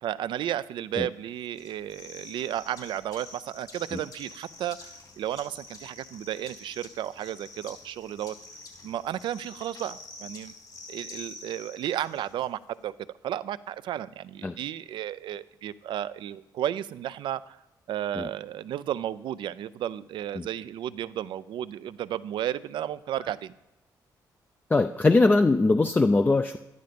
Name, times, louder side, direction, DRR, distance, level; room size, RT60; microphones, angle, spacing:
voice 1, 0.0-4.9 5.2-8.4 8.8-10.5 10.9-12.9 13.2-17.6 17.9-23.5, right 11 dB, 80° right, 16 dB, 0.5 m, -33 dB
sound 1, 1.5-12.4, left 3 dB, 60° left, 2.9 m, -47 dB
voice 2, 24.7-26.6, left 3 dB, 20° left, 7 dB, 0.5 m, -21 dB
11.5 x 11.0 x 5.1 m, 0.97 s
cardioid pair, 85°, 8 cm